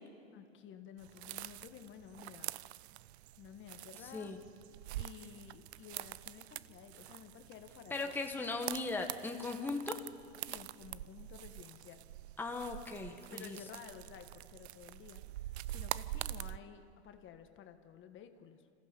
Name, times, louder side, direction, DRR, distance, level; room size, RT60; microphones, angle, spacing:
voice 1, 0.3-2.5 3.4-4.4 5.0-8.2 10.5-12.1 13.3-18.7, left 8 dB, 35° left, 8 dB, 1.5 m, -53 dB
sound 1, 1.0-16.6, right 15 dB, 75° right, 0.5 m, -45 dB
voice 2, 7.9-10.0 12.4-13.6, left 3 dB, 5° left, 3 dB, 1.2 m, -38 dB
26.5 x 15.0 x 6.7 m, 2.3 s
hypercardioid pair, 105°, 33 cm